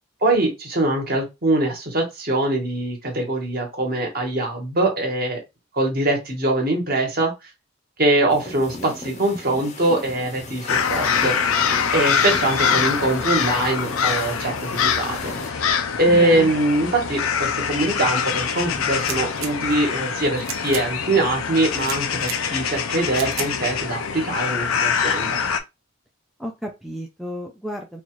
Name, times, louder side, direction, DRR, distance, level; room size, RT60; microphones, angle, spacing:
voice 1, 0.2-5.4 5.7-7.3 8.0-25.4, right 2 dB, 45° right, 1 dB, 1.3 m, -23 dB
sound 1, 8.3-15.5, left 2 dB, 35° left, 0.7 m, -36 dB
sound 2, 10.7-25.6, left 6 dB, 80° left, 0.5 m, -24 dB
voice 2, 16.1-16.5 26.4-28.0, equal, ahead, 1 dB, 0.4 m, -32 dB
sound 3, 18.9-19.5 20.3-20.8 21.8-22.4 23.1-23.5, right 7 dB, 70° right, 0.7 m, -33 dB
4.1 x 2.4 x 3.1 m, 0.23 s
head